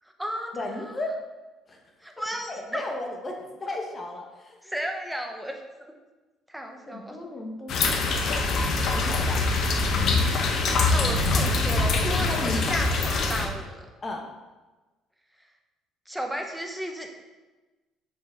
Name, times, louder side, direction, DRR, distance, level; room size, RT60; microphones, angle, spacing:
voice 1, 0.0-1.0 2.0-2.8 4.6-5.6 6.5-7.3 10.9-13.9 16.1-17.1, equal, 5° right, 3 dB, 1.1 m, -34 dB
voice 2, 0.5-1.1 1.7-1.8 2.5-4.6 6.9-8.0 8.9-9.4 11.0-11.1 12.0-12.6 14.0-14.3, left 2 dB, 30° left, 1 dB, 1.3 m, -34 dB
sound 1, 7.7-13.5, left 3 dB, 60° left, 1.0 m, -24 dB
6.5 x 5.7 x 3.7 m, 1.2 s
supercardioid pair, 85°, 0 cm